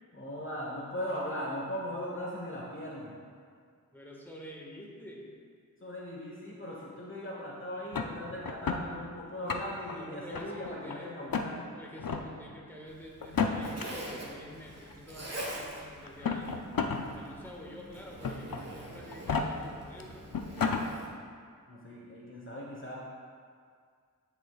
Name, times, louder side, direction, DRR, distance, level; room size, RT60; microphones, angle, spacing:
voice 1, 0.1-3.1 5.8-11.7 21.7-23.0, equal, 35° left, -4 dB, 1.3 m, -39 dB
voice 2, 3.9-5.3 9.7-11.3 11.8-16.7 17.1-20.3, equal, 5° left, -3 dB, 1.7 m, -48 dB
sound 1, 7.9-8.8 9.3-9.9 10.3-10.9 11.3-11.5 12.0-12.2 13.2-13.8 14.9-15.0 16.0-17.0 17.4-17.5 18.2-18.6 19.1-19.4 20.0-20.1 20.3-20.8, left 5 dB, 75° left, 0.6 m, -31 dB
Zipper (clothing), 12.9-21.1, right 1 dB, 45° right, 1.5 m, -45 dB
13.0 x 6.8 x 2.4 m, 2.1 s
wide cardioid pair, 55°, 35 cm